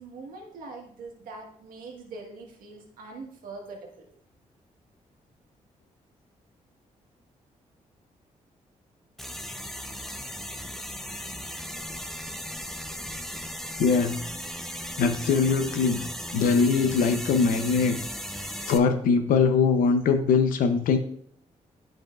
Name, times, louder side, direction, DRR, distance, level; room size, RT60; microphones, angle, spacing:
voice 1, 0.0-4.1, right 3 dB, 85° right, 1.4 m, -42 dB
sound 1, 9.2-18.8, equal, ahead, 0.6 m, -37 dB
voice 2, 13.8-14.2 15.0-16.1 16.3-18.0 18.6-21.0, left 5 dB, 85° left, 0.7 m, -22 dB
9.2 x 5.2 x 2.4 m
cardioid pair, 60°, 14 cm